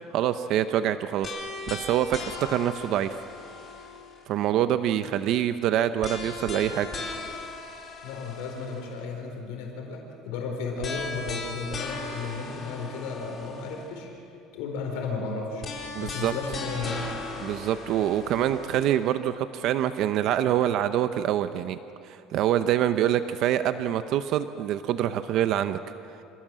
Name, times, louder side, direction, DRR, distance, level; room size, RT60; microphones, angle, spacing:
voice 1, 0.1-1.3 1.7-3.2 4.3-6.9 15.9-16.3 17.4-21.8 22.0-25.8, right 11 dB, 55° right, 10 dB, 0.7 m, -25 dB
sound 1, 1.2-4.4 6.0-9.0 10.8-14.0 15.6-19.1, left 3 dB, 30° left, 4.0 m, -38 dB
voice 2, 8.0-14.1 14.5-15.6 16.0-17.1, left 4 dB, 85° left, 1 dB, 4.4 m, -34 dB
27.0 x 17.5 x 7.6 m, 2.6 s
cardioid pair, 150°, 0 cm